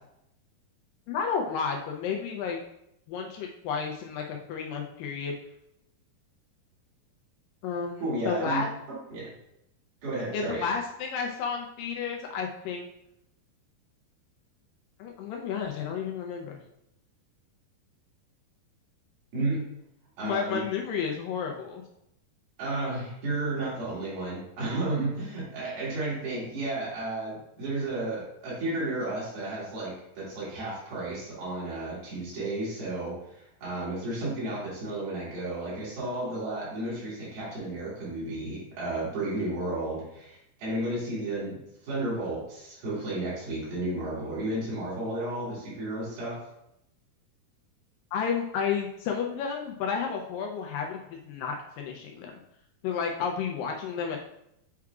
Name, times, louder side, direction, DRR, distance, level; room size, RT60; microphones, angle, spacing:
voice 1, 1.1-2.6 3.1-5.3 7.6-8.7 10.3-12.9 15.0-16.6 20.2-21.8 48.1-52.4 52.8-54.2, left 6 dB, 85° left, 1 dB, 2.0 m, -31 dB
voice 2, 8.0-9.3 10.0-10.7 19.3-19.7 20.2-20.6 22.6-46.4, right 2 dB, 70° right, -8 dB, 4.2 m, -33 dB
8.4 x 4.7 x 2.4 m, 0.81 s
omnidirectional pair, 4.5 m